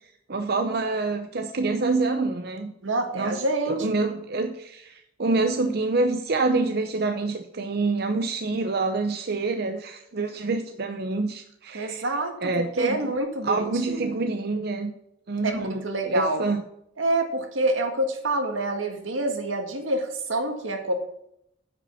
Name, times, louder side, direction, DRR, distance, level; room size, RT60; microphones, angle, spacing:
voice 1, 0.3-2.7 3.2-3.4 3.7-12.0 12.4-13.1 13.4-14.9 15.3-16.6, right 3 dB, 55° right, 6 dB, 0.7 m, -26 dB
voice 2, 2.8-3.9 11.7-14.2 15.4-16.4 17.0-20.9, right 2 dB, 85° right, 4 dB, 1.8 m, -27 dB
9.8 x 5.6 x 6.9 m, 0.77 s
head